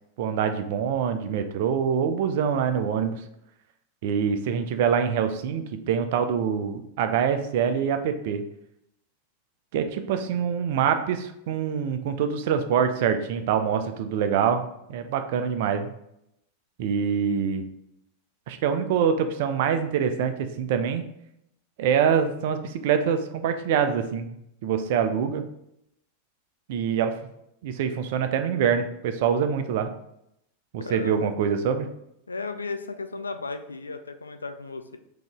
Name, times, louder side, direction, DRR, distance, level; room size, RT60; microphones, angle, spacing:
voice 1, 0.2-3.2 4.0-8.4 9.7-15.9 16.8-17.6 18.5-21.0 21.8-24.3 24.6-25.4 26.7-27.2 27.6-29.9 30.9-31.9, right 7 dB, 50° right, 8 dB, 0.4 m, -25 dB
voice 2, 30.8-31.4 32.3-35.0, left 4 dB, 75° left, 8 dB, 0.3 m, -35 dB
3.8 x 2.9 x 3.5 m, 0.78 s
figure-of-eight pair, 90°, 0 cm